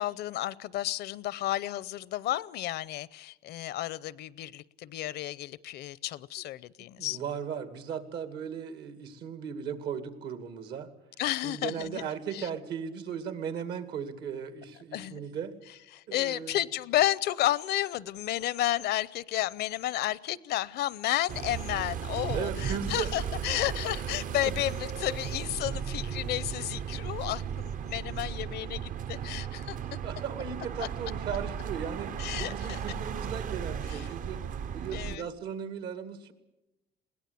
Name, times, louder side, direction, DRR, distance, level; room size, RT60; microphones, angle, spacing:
voice 1, 0.0-7.2 11.2-12.5 14.9-15.2 15.9-29.8 30.8-30.9 32.2-32.8 33.9-34.0 34.9-35.3, left 14 dB, 75° left, 21 dB, 0.6 m, -32 dB
voice 2, 7.0-10.9 11.4-15.5 16.1-16.6 22.3-23.1 30.0-32.1 32.4-34.4 34.7-36.3, right 7 dB, 80° right, 10 dB, 2.3 m, -37 dB
sound 1, 21.3-35.2, right 8 dB, 50° right, 0.7 m, -36 dB
21.5 x 17.5 x 8.4 m, 0.97 s
cardioid pair, 110°, 17 cm